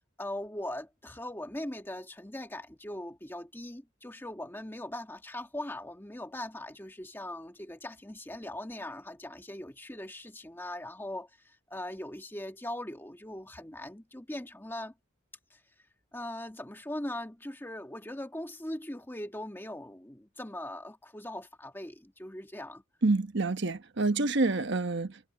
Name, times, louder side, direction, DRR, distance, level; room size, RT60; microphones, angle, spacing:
voice 1, 0.2-14.9 15.5-15.6 16.1-22.8, left 1 dB, 10° left, 1.5 m, -40 dB
voice 2, 23.0-25.2, right 3 dB, 60° right, 1.1 m, -27 dB
head